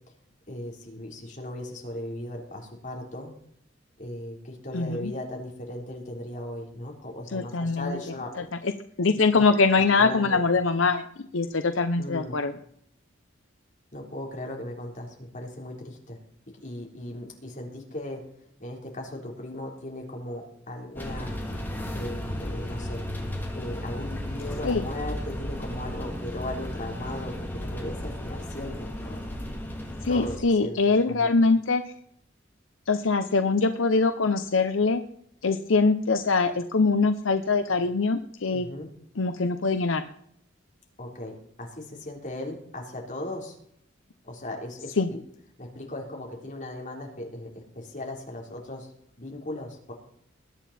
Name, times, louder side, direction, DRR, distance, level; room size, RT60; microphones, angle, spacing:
voice 1, 0.5-3.3 4.0-8.5 9.3-9.4 10.0-10.4 12.0-12.4 13.9-16.2 16.6-18.3 18.6-21.3 21.9-23.0 23.5-29.3 30.1-30.8 31.1-31.5 38.5-38.9 41.0-43.6 44.2-45.2 45.6-48.9 49.2-49.9, left 1 dB, 40° left, 0 dB, 3.8 m, -37 dB
voice 2, 4.7-5.1 7.3-8.0 8.6-8.7 9.0-12.5 24.6-24.8 30.0-31.8 32.9-35.0 35.4-38.7 39.2-40.0 45.0-45.1, left 4 dB, 75° left, 9 dB, 0.8 m, -23 dB
sound 1, 21.0-30.4, equal, 10° left, 3.1 m, -34 dB
21.0 x 9.2 x 4.3 m, 0.68 s
head